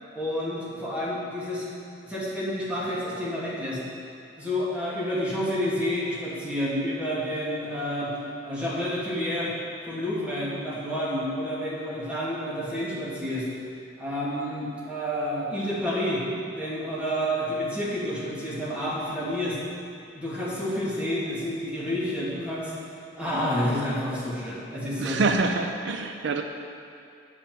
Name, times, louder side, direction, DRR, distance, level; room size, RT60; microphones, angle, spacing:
voice 1, 0.1-1.7 2.0-3.8 4.4-8.1 8.4-9.5 9.8-13.5 14.0-16.2 16.5-19.6 20.2-22.7 23.2-25.4, equal, 5° right, -8 dB, 2.2 m, -29 dB
voice 2, 25.0-26.4, right 3 dB, 70° right, 5 dB, 0.5 m, -25 dB
8.3 x 5.5 x 7.6 m, 2.5 s
head